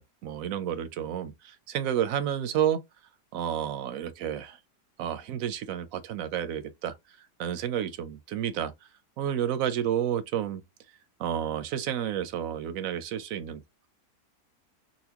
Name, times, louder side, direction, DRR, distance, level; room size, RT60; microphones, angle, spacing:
voice 1, 0.0-2.8 3.3-4.6 5.0-7.0 7.4-8.7 9.2-10.6 11.2-13.6, right 9 dB, 70° right, 0.8 m, -30 dB
4.1 x 2.2 x 2.8 m
omnidirectional pair, 1.7 m